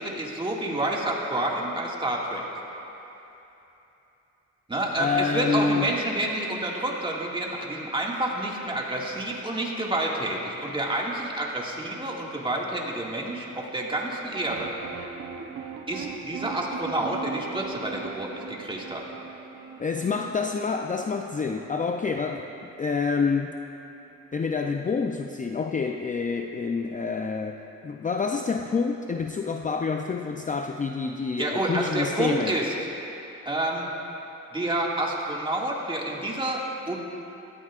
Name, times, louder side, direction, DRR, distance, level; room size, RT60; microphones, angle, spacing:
voice 1, 0.0-2.5 4.7-14.7 15.9-19.0 31.4-32.7 33.5-33.9 34.5-37.0, right 1 dB, 15° right, -3 dB, 2.0 m, -29 dB
voice 2, 5.0-5.9 19.8-23.6 24.3-32.6, left 5 dB, 25° left, 4 dB, 0.5 m, -28 dB
sound 1, 14.3-24.6, right 6 dB, 65° right, 0.8 m, -41 dB
17.0 x 13.5 x 2.5 m, 3.0 s
cardioid pair, 85°, 30 cm